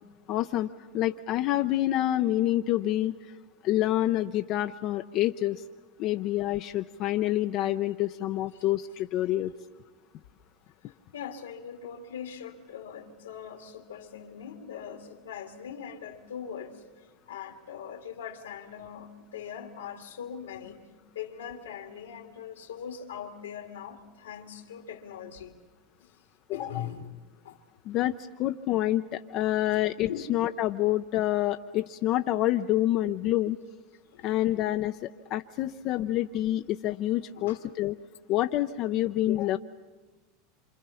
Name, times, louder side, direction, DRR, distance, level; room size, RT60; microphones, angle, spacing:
voice 1, 0.3-0.7 0.9-3.4 3.6-5.6 6.0-9.5 26.5-26.9 27.9-33.6 34.2-38.0 38.3-39.6, left 14 dB, 50° left, 7 dB, 0.6 m, -27 dB
voice 2, 10.8-16.8 17.3-20.8 21.1-25.6 26.0-26.1 26.5-27.2 27.4-27.6 30.1-30.3 34.1-34.3 37.4-37.6, left 8 dB, 90° left, 5 dB, 2.3 m, -41 dB
27.0 x 27.0 x 5.7 m, 1.3 s
hypercardioid pair, 95°, 0 cm